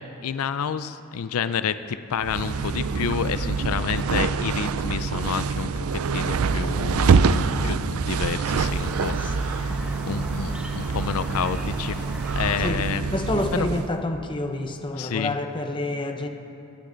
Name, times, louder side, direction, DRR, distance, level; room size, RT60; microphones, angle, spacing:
voice 1, 0.2-12.0 12.3-13.1 13.5-13.7 14.9-15.4, left 7 dB, 80° left, 12 dB, 0.4 m, -29 dB
sound 1, 2.2-13.9, right 5 dB, 80° right, 0.4 m, -25 dB
voice 2, 6.5-7.4 9.2-9.3 12.6-12.8 13.1-16.3, left 2 dB, 20° left, 5 dB, 0.8 m, -29 dB
sound 2, 8.6-12.7, equal, 5° right, 1.2 m, -37 dB
25.0 x 9.9 x 3.9 m, 2.7 s
head